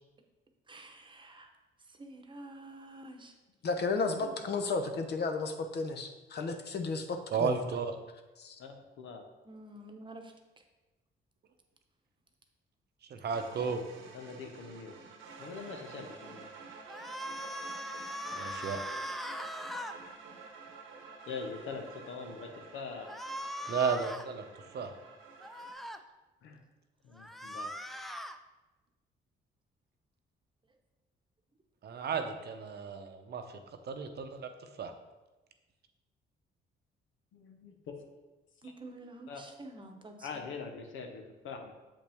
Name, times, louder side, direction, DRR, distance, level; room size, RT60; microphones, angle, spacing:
voice 1, 0.7-1.5 2.0-3.3 4.2-4.3 9.4-10.3 38.6-40.4, right 2 dB, 25° right, 4 dB, 0.9 m, -48 dB
voice 2, 3.6-7.6 8.4-8.6, left 4 dB, 55° left, 6 dB, 0.8 m, -33 dB
voice 3, 7.3-7.9 13.1-13.8 18.3-18.8 23.7-24.4 24.7-24.9 31.8-33.4 33.8-34.5 34.8-34.9, right 6 dB, 55° right, 6 dB, 0.7 m, -33 dB
voice 4, 8.6-9.2 14.1-14.9 15.4-16.5 21.3-23.1 26.4-26.6 27.0-27.7 37.3-37.9 38.6-38.7 39.3-39.4 40.2-41.7, left 5 dB, 85° left, 4 dB, 1.0 m, -43 dB
sound 1, 13.3-25.7, right 4 dB, 90° right, 1.1 m, -50 dB
sound 2, 16.9-20.0 23.1-24.3 25.4-26.0 27.2-28.4, equal, ahead, 0.4 m, -40 dB
7.2 x 5.2 x 3.5 m, 1.1 s
cardioid pair, 90°, 20 cm